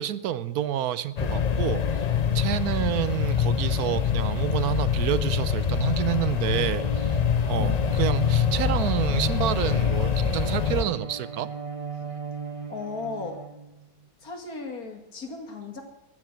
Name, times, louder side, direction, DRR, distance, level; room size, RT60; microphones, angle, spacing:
voice 1, 0.0-2.1 2.3-7.2 7.5-11.5, right 11 dB, 75° right, 15 dB, 1.2 m, -28 dB
sound 1, 1.2-10.8, left 7 dB, 50° left, 0.5 m, -25 dB
voice 2, 2.8-3.1 7.6-7.9 12.7-13.4 14.2-15.8, left 4 dB, 70° left, 4 dB, 2.7 m, -36 dB
Bowed string instrument, 5.7-14.1, right 5 dB, 25° right, 0.8 m, -37 dB
14.5 x 9.8 x 6.2 m, 0.97 s
omnidirectional pair, 1.6 m